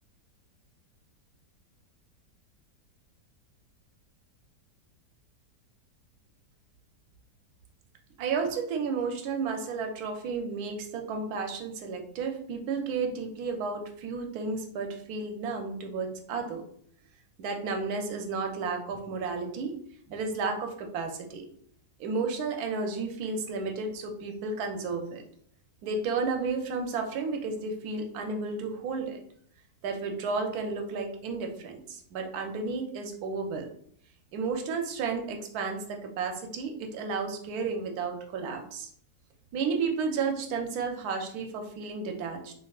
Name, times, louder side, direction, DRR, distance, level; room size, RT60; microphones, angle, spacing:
voice 1, 8.2-16.6 17.4-19.8 20.1-21.5 22.0-25.2 25.8-29.2 29.8-33.7 34.3-38.9 39.5-42.5, right 4 dB, 70° right, 4 dB, 1.0 m, -32 dB
3.4 x 3.1 x 2.3 m, 0.62 s
omnidirectional pair, 1.8 m